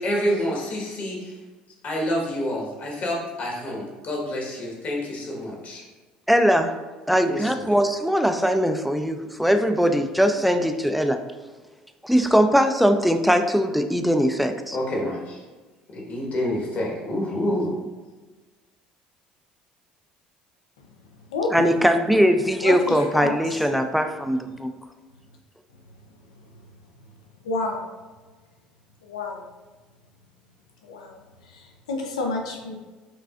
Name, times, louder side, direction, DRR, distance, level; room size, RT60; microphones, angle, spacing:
voice 1, 0.0-1.3 1.8-5.8 7.2-7.5 14.7-15.4 15.9-17.8, equal, 50° left, -2 dB, 1.3 m, -28 dB
voice 2, 6.3-6.8 7.1-11.2 12.0-14.8 21.5-24.7, equal, ahead, 7 dB, 0.4 m, -21 dB
voice 3, 22.6-23.7 27.4-27.9 29.0-29.4 30.8-32.8, left 3 dB, 90° left, 1 dB, 0.5 m, -30 dB
5.7 x 2.4 x 2.4 m, 1.3 s
hypercardioid pair, 70°, 3 cm